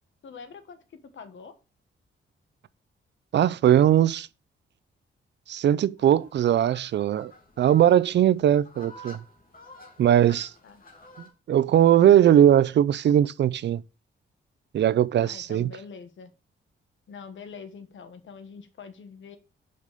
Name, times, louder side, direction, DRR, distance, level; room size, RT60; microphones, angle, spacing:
voice 1, 0.2-1.5 10.6-10.8 15.2-16.3 17.1-19.4, left 5 dB, 65° left, 1.3 m, -44 dB
voice 2, 3.3-4.3 5.5-7.3 7.6-9.2 10.0-10.5 11.5-13.8 14.7-15.7, right 10 dB, 60° right, 0.4 m, -20 dB
sound 1, 6.0-11.3, left 1 dB, 45° left, 2.3 m, -50 dB
5.3 x 5.2 x 6.5 m
cardioid pair, 110°, 21 cm